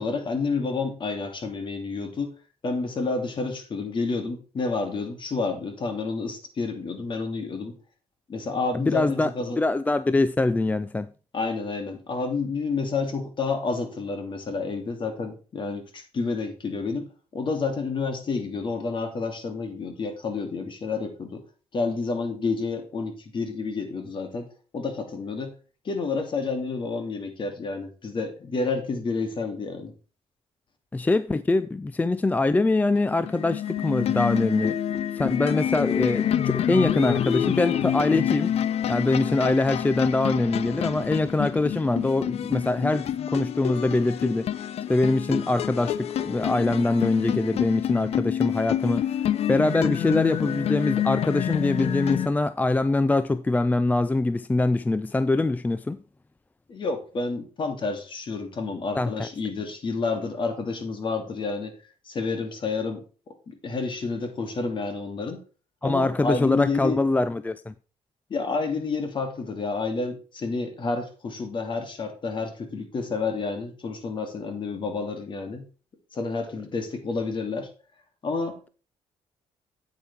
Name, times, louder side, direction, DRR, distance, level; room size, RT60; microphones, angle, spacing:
voice 1, 0.0-2.3 2.6-7.7 8.3-9.6 11.3-17.1 17.3-21.4 21.7-24.5 24.7-25.5 25.8-29.9 56.7-61.7 62.1-63.0 63.5-65.4 65.8-67.0 68.3-75.6 76.1-77.7 78.2-78.6, left 4 dB, 45° left, 2.7 m, -29 dB
voice 2, 8.7-9.3 9.6-11.1 30.9-34.8 35.1-38.5 38.9-44.5 44.9-56.0 58.9-59.3 65.8-67.7, left 2 dB, 15° left, 0.4 m, -23 dB
sound 1, 32.9-52.3, left 10 dB, 60° left, 0.7 m, -27 dB
9.0 x 8.7 x 3.5 m
cardioid pair, 100°, 12 cm